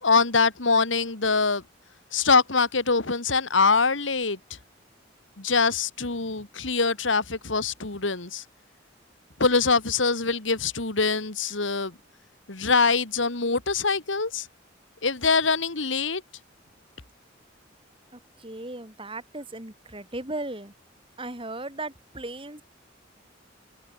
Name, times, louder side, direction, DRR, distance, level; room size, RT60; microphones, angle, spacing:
voice 1, 0.0-1.6 2.1-4.4 5.4-8.4 9.4-11.9 12.5-14.5 15.0-16.2, left 4 dB, 85° left, 2.3 m, -23 dB
voice 2, 18.1-20.7 21.2-22.6, right 2 dB, 30° right, 6.5 m, -36 dB
open air
head